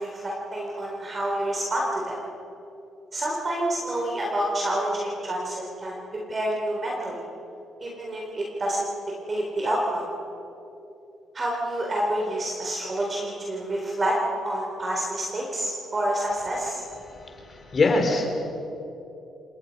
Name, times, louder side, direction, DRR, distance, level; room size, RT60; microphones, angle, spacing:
voice 1, 0.0-2.2 3.1-6.0 6.3-7.2 7.8-8.9 9.3-10.1 11.3-14.2 14.4-16.8, right 1 dB, 35° right, -2 dB, 4.0 m, -28 dB
voice 2, 17.3-18.3, left 3 dB, 40° left, 4 dB, 3.7 m, -23 dB
28.5 x 19.0 x 5.4 m, 2.9 s
cardioid pair, 90°, 0 cm